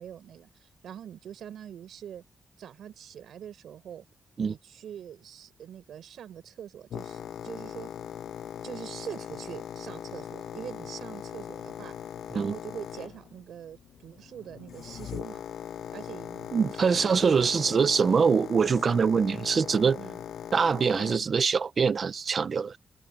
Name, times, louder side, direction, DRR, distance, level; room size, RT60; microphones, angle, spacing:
voice 1, 0.0-2.2 2.6-4.0 4.4-7.9 8.6-11.9 12.3-15.4 15.9-17.8 20.0-20.2, right 9 dB, 90° right, 6.9 m, -43 dB
Boat Water vehicle, 6.9-21.2, left 9 dB, 85° left, 7.1 m, -40 dB
voice 2, 16.5-20.0 20.5-22.8, right 5 dB, 45° right, 0.7 m, -24 dB
wide cardioid pair, 120°, 0 cm